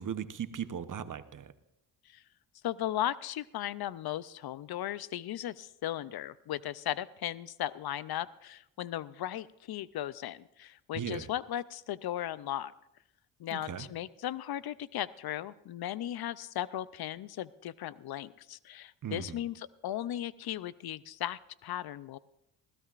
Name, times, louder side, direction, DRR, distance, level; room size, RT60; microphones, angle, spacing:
voice 1, 0.0-1.5 10.9-11.3 13.5-13.9 19.0-19.4, right 8 dB, 45° right, 11 dB, 0.9 m, -38 dB
voice 2, 2.6-12.7 13.4-22.2, left 12 dB, 60° left, 18 dB, 0.5 m, -37 dB
20.0 x 15.5 x 2.5 m, 0.83 s
cardioid pair, 70°, 43 cm